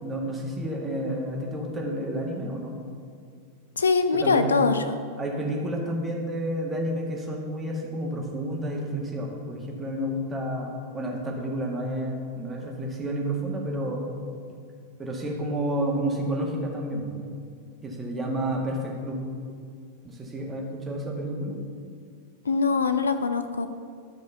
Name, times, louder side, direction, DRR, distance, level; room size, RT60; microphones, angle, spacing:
voice 1, 0.0-2.8 4.1-4.5 5.2-14.1 15.0-17.2 17.8-19.2 20.0-21.6, right 1 dB, 15° right, -1 dB, 1.9 m, -30 dB
voice 2, 3.8-5.0 22.5-23.7, left 4 dB, 70° left, 10 dB, 0.4 m, -23 dB
12.0 x 5.2 x 5.6 m, 2.3 s
figure-of-eight pair, 90°, 0 cm